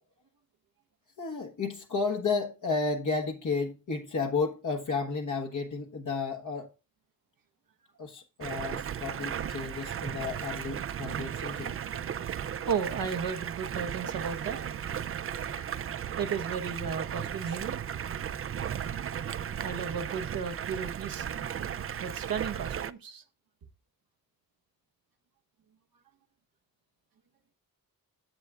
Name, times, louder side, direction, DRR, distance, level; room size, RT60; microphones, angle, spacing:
voice 1, 1.2-6.7 8.0-11.8 15.6-15.7 17.4-17.6, left 4 dB, 60° left, 1.2 m, -32 dB
Stream, 8.4-22.9, right 9 dB, 40° right, 0.4 m, -35 dB
voice 2, 12.7-14.8 16.2-17.8 19.6-21.4 22.0-23.2, right 6 dB, 85° right, 1.1 m, -34 dB
10.5 x 7.1 x 2.3 m
wide cardioid pair, 90°, 33 cm